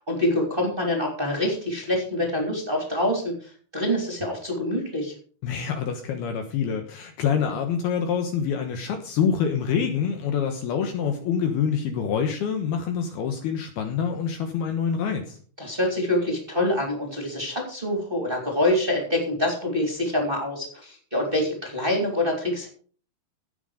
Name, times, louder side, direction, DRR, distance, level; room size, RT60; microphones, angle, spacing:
voice 1, 0.0-5.1 15.6-22.7, left 1 dB, 15° right, 0 dB, 2.6 m, -26 dB
voice 2, 5.4-15.4, left 7 dB, 70° left, 6 dB, 2.8 m, -26 dB
15.5 x 8.0 x 5.0 m, 0.43 s
omnidirectional pair, 5.3 m